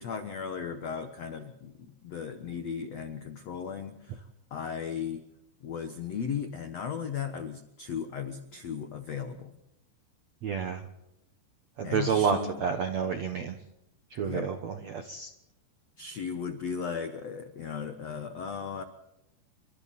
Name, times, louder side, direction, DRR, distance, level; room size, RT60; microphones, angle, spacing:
voice 1, 0.0-5.2 5.6-9.5 11.8-12.6 14.2-14.5 16.0-18.8, left 7 dB, 85° left, 8 dB, 1.4 m, -36 dB
voice 2, 10.4-10.8 11.8-13.5 14.1-15.3, right 6 dB, 70° right, 6 dB, 1.6 m, -29 dB
30.0 x 25.0 x 4.3 m, 0.89 s
omnidirectional pair, 5.1 m